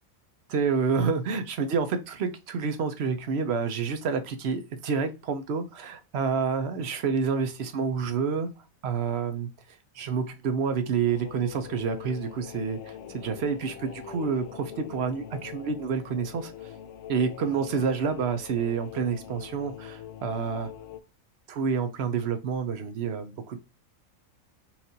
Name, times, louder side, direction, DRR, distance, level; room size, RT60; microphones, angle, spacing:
voice 1, 0.5-8.5 8.8-9.5 9.9-16.7 17.1-20.7 21.5-23.6, right 5 dB, 60° right, 7 dB, 0.8 m, -28 dB
sound 1, 11.0-21.0, left 10 dB, 65° left, 0.9 m, -43 dB
5.7 x 2.5 x 2.7 m, 0.29 s
omnidirectional pair, 1.4 m